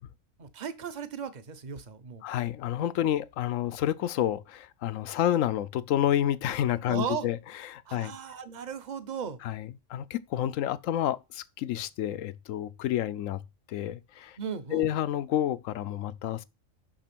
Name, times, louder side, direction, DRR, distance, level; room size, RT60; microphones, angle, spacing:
voice 1, 0.4-2.2 6.8-7.3 7.8-9.4 14.4-14.9, right 6 dB, 40° right, 0.9 m, -36 dB
voice 2, 2.2-7.4 7.7-8.1 9.4-13.4 13.7-14.4 14.7-16.4, left 11 dB, 85° left, 1.0 m, -29 dB
6.6 x 6.1 x 6.0 m
omnidirectional pair, 1.3 m